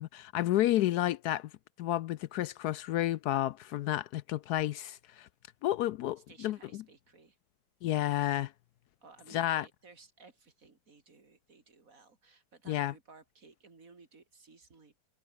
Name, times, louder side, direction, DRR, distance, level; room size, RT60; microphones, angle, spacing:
voice 1, 0.0-1.5 1.8-5.3 5.6-6.8 7.8-8.5 9.3-9.7 12.7-12.9, left 14 dB, 75° left, 0.9 m, -31 dB
voice 2, 6.2-7.4 9.0-15.1, right 4 dB, 40° right, 3.3 m, -58 dB
omnidirectional pair, 2.2 m